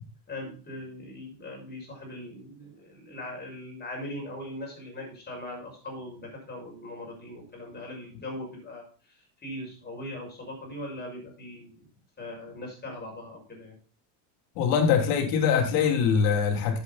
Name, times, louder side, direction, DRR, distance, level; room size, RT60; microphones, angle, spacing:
voice 1, 0.3-8.8 9.4-11.8 12.2-13.7, left 1 dB, 20° left, -1 dB, 6.2 m, -40 dB
voice 2, 14.5-16.8, left 6 dB, 75° left, 3 dB, 3.1 m, -23 dB
9.8 x 8.1 x 4.1 m, 0.37 s
supercardioid pair, 120°, 48 cm